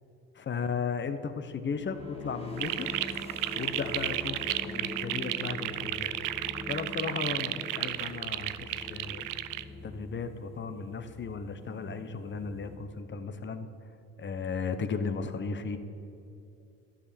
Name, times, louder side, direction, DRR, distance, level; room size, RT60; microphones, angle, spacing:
voice 1, 0.4-2.9 3.6-6.1 6.7-9.2 9.8-13.7 14.2-15.8, left 5 dB, 30° left, 10 dB, 0.8 m, -35 dB
sound 1, 1.7-13.3, left 2 dB, 15° left, 1.5 m, -43 dB
sound 2, 2.6-9.6, right 15 dB, 60° right, 0.5 m, -33 dB
11.5 x 5.0 x 6.9 m, 2.7 s
supercardioid pair, 80°, 36 cm